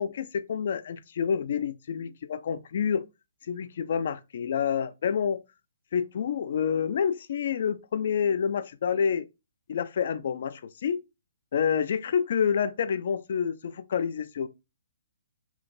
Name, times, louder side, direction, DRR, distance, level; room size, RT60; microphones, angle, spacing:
voice 1, 0.0-3.0 3.5-5.4 5.9-9.3 9.7-11.0 11.5-14.5, left 7 dB, 50° left, 0.3 m, -28 dB
3.1 x 2.4 x 4.1 m
hypercardioid pair, 175°, 0 cm